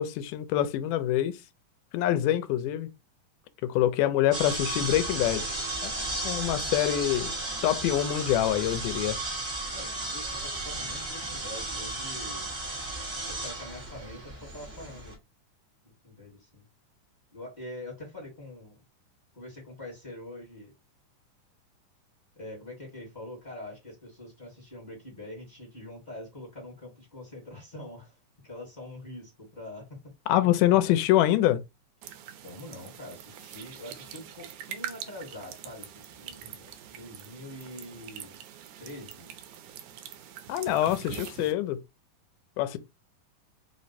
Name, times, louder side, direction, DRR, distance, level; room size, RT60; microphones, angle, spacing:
voice 1, 0.0-1.4 1.9-2.9 3.6-5.5 5.8-5.9 6.2-7.3 7.6-9.2 30.3-31.6 40.5-41.8 42.6-42.8, left 12 dB, 85° left, 2.1 m, -25 dB
sound 1, 4.3-15.1, right 2 dB, 50° right, 0.7 m, -34 dB
voice 2, 9.7-12.5 13.3-15.2 15.8-16.6 17.3-18.8 19.3-20.7 22.3-28.2 28.4-30.0 30.4-30.9 32.4-38.4 38.8-39.3, left 1 dB, 25° left, 0.9 m, -44 dB
sound 2, 32.0-41.5, right 9 dB, 80° right, 2.1 m, -44 dB
5.0 x 2.1 x 4.1 m
omnidirectional pair, 3.7 m